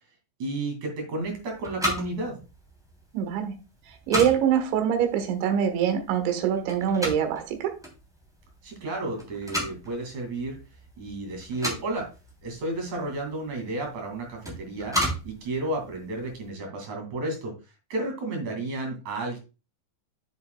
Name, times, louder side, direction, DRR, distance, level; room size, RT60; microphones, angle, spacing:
voice 1, 0.4-2.4 8.6-10.6 11.0-12.1 12.4-15.0 15.2-17.5 17.9-19.4, right 2 dB, 45° right, 2 dB, 3.3 m, -32 dB
sound 1, 1.2-16.5, equal, ahead, 1.8 m, -36 dB
voice 2, 3.1-3.6 3.9-7.7, right 8 dB, 85° right, 6 dB, 3.6 m, -24 dB
9.7 x 7.3 x 2.2 m, 0.31 s
omnidirectional pair, 5.1 m